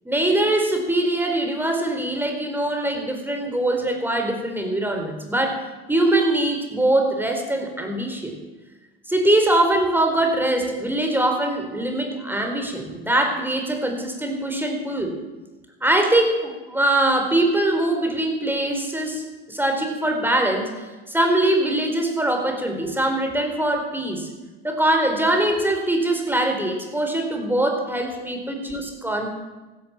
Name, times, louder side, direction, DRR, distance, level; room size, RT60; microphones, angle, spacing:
voice 1, 0.0-5.6 5.9-8.3 9.1-15.2 15.8-19.2 19.5-24.3 24.6-29.3, right 1 dB, 5° right, 4 dB, 4.3 m, -22 dB
15.0 x 13.0 x 7.4 m, 1.2 s
hypercardioid pair, 70°, 30 cm